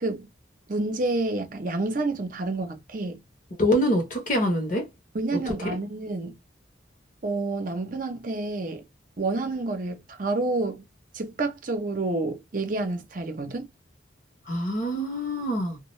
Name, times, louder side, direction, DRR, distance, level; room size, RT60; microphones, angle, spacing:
voice 1, 0.7-3.2 5.1-6.4 7.2-8.8 9.2-10.8 11.1-13.7, right 2 dB, 45° right, 0.6 m, -29 dB
voice 2, 3.6-4.9 14.5-15.8, equal, 45° left, 0.9 m, -25 dB
2.3 x 2.1 x 3.1 m
head